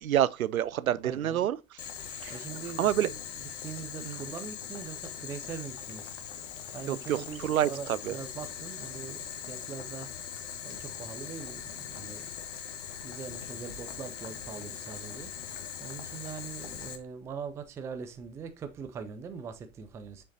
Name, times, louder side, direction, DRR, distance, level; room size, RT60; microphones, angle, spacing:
voice 1, 0.0-1.6 2.2-2.4 2.8-3.1 4.1-4.2 6.9-8.1, right 11 dB, 85° right, 0.6 m, -28 dB
voice 2, 1.0-1.5 2.3-6.5 6.7-10.3 10.6-12.3 13.0-20.2, right 6 dB, 10° right, 0.3 m, -42 dB
Boiling, 1.8-17.0, left 8 dB, 60° left, 1.3 m, -41 dB
6.9 x 5.2 x 2.7 m
hypercardioid pair, 105°, 41 cm